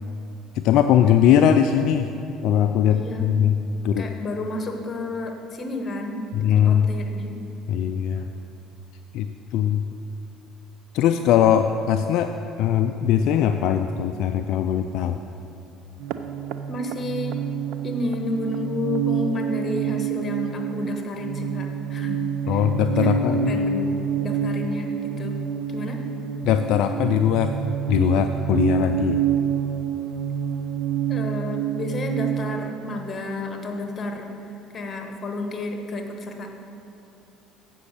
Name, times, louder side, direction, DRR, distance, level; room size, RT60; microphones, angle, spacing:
voice 1, 0.5-2.1 2.4-3.6 3.8-4.1 6.3-6.9 7.7-8.3 9.1-9.8 10.9-15.2 22.5-23.6 26.4-27.6 27.9-29.2, left 9 dB, 70° left, 7 dB, 0.3 m, -20 dB
voice 2, 2.9-3.3 4.0-6.2 6.5-7.3 16.7-17.4 17.8-22.7 23.0-23.1 23.4-25.4 25.7-26.0 31.1-34.3 34.7-36.5, left 2 dB, 35° left, 4 dB, 1.3 m, -31 dB
sound 1, 16.0-32.7, right 8 dB, 70° right, 0.5 m, -27 dB
8.3 x 6.2 x 6.6 m, 3.0 s
supercardioid pair, 75°, 0 cm